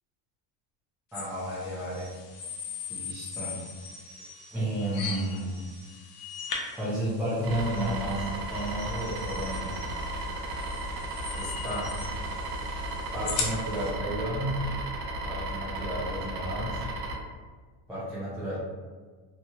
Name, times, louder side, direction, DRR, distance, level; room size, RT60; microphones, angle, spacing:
sound 1, 1.1-13.9, left 5 dB, 60° left, 0.7 m, -40 dB
voice 1, 1.1-2.1 2.9-3.7 4.5-5.5 6.7-9.8 11.3-12.0 13.1-14.6 15.3-16.8 17.9-18.6, right 1 dB, ahead, -11 dB, 0.3 m, -32 dB
sound 2, 7.4-17.2, right 1 dB, 80° right, 0.8 m, -34 dB
2.8 x 2.2 x 2.8 m, 1.5 s
cardioid pair, 145°, 49 cm